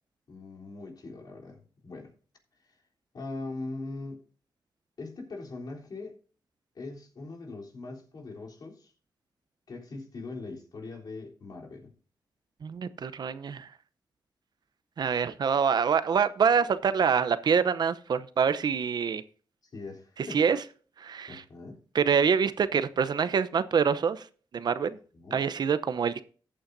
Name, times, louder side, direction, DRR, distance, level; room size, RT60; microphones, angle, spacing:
voice 1, 0.3-2.1 2.6-2.8 3.1-4.2 5.0-6.2 6.7-8.9 9.7-11.9 19.7-20.4 21.3-21.8 25.1-25.4, left 3 dB, 55° left, 3.5 m, -41 dB
voice 2, 12.6-13.7 15.0-19.2 20.2-20.6 21.0-21.4 21.9-24.3 24.5-25.0 25.3-26.2, right 6 dB, 65° right, 0.8 m, -26 dB
14.5 x 8.8 x 2.7 m
cardioid pair, 80°, 8 cm